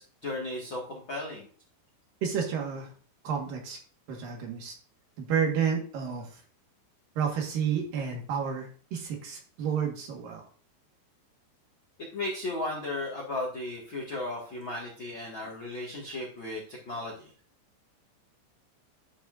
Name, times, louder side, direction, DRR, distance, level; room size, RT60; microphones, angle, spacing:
voice 1, 0.0-1.5 12.1-17.3, left 2 dB, 65° left, -3 dB, 1.2 m, -35 dB
voice 2, 2.2-2.9 3.2-3.8 4.1-4.7 5.2-6.4 7.2-10.4, right 7 dB, 60° right, 1 dB, 2.7 m, -30 dB
11.5 x 6.2 x 2.6 m, 0.43 s
omnidirectional pair, 5.5 m